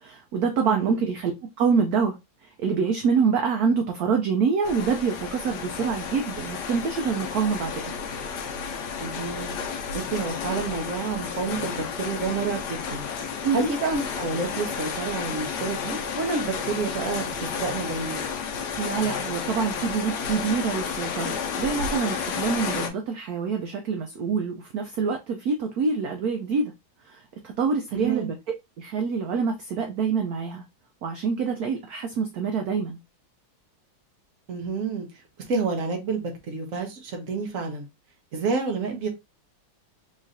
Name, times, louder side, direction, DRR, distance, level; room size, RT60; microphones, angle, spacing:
voice 1, 0.0-1.3 1.6-2.2 2.6-8.0 13.4-13.7 18.8-26.7 27.1-28.3 28.8-30.6 31.0-33.0, right 5 dB, 80° right, 0.8 m, -26 dB
voice 2, 0.6-1.0 9.0-9.5 9.9-13.1 13.3-18.2 27.9-28.3 34.5-35.1 35.5-37.9 38.3-39.1, right 4 dB, 55° right, 1.0 m, -29 dB
sound 1, 4.6-22.9, left 6 dB, 65° left, 1.1 m, -32 dB
4.0 x 3.1 x 2.6 m
omnidirectional pair, 2.2 m